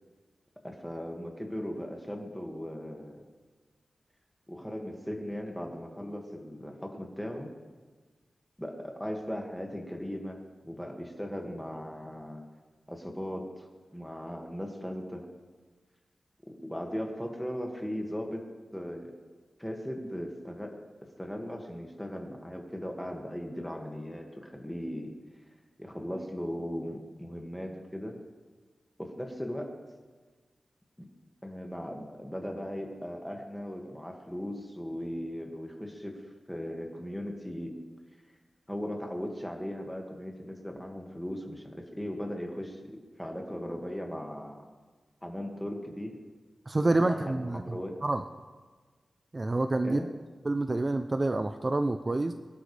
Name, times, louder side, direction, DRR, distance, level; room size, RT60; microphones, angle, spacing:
voice 1, 0.6-3.2 4.5-7.5 8.6-10.4 10.6-12.4 12.9-13.7 13.9-15.3 16.5-18.4 18.7-19.1 19.6-20.8 21.2-25.1 25.8-28.2 29.0-29.7 31.4-36.2 36.5-37.7 38.7-44.6 45.2-46.1 46.8-48.0 49.8-50.1, equal, 5° left, 1 dB, 2.0 m, -38 dB
voice 2, 46.7-48.2 49.3-50.0 50.4-52.3, right 2 dB, 30° right, 8 dB, 0.5 m, -28 dB
23.5 x 12.0 x 3.4 m, 1.4 s
wide cardioid pair, 115°, 0 cm